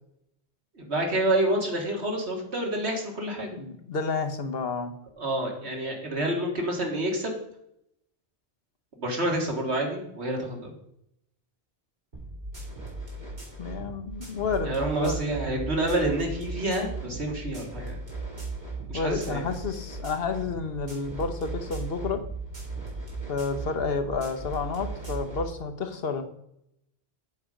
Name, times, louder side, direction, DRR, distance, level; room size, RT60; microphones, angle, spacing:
voice 1, 0.8-3.6 5.2-7.4 9.0-10.7 14.6-18.0 18.9-19.4, right 1 dB, 80° right, 1 dB, 2.2 m, -28 dB
voice 2, 3.6-4.9 13.6-15.3 18.9-22.2 23.3-26.2, left 4 dB, 65° left, 7 dB, 1.1 m, -30 dB
sound 1, 12.1-25.4, right 3 dB, 45° right, 3.2 m, -37 dB
7.9 x 7.1 x 5.0 m, 0.78 s
omnidirectional pair, 1.1 m